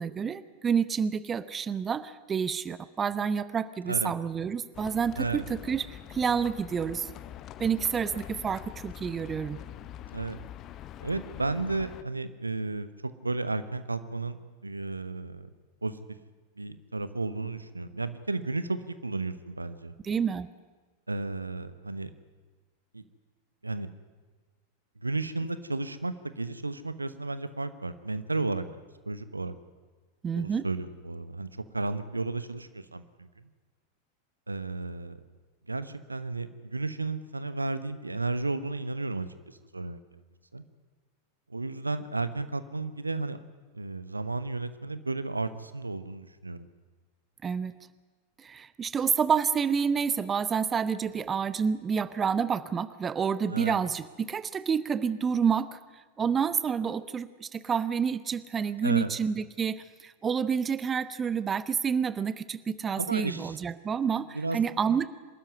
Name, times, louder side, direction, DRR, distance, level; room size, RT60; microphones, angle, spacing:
voice 1, 0.0-7.1 7.6-9.6 20.0-20.5 30.2-30.7 47.4-47.7 48.4-55.8 56.2-65.1, right 6 dB, 20° right, 15 dB, 0.8 m, -29 dB
Livestock farm animals working animals, 4.7-12.0, left 11 dB, 35° left, 0.8 m, -44 dB
voice 2, 11.0-15.5 15.8-16.0 16.6-19.9 21.1-22.1 22.9-23.0 23.6-23.9 25.0-28.6 29.1-29.6 30.3-31.5 31.7-33.5 34.5-35.2 35.7-40.0 40.5-40.6 41.5-43.4 43.7-46.7 53.5-53.8 58.8-59.1 63.0-63.6 64.3-64.6, right 3 dB, 80° right, 13 dB, 1.0 m, -33 dB
25.0 x 13.5 x 9.6 m, 1.4 s
figure-of-eight pair, 90°, 0 cm